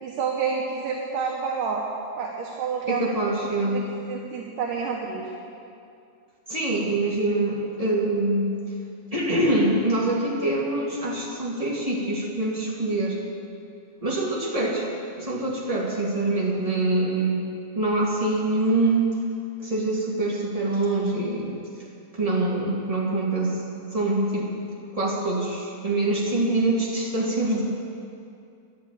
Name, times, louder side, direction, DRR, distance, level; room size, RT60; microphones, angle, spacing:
voice 1, 0.0-1.8 2.2-3.3 3.6-5.3, right 5 dB, 65° right, -1 dB, 2.4 m, -29 dB
voice 2, 2.9-3.8 6.5-8.5 9.1-13.2 14.0-14.9 15.2-17.4 17.7-19.1 19.6-21.6 22.1-23.6 23.9-24.5 24.9-27.6, right 2 dB, 15° right, -6 dB, 1.3 m, -24 dB
11.5 x 10.5 x 8.5 m, 2.5 s
omnidirectional pair, 4.5 m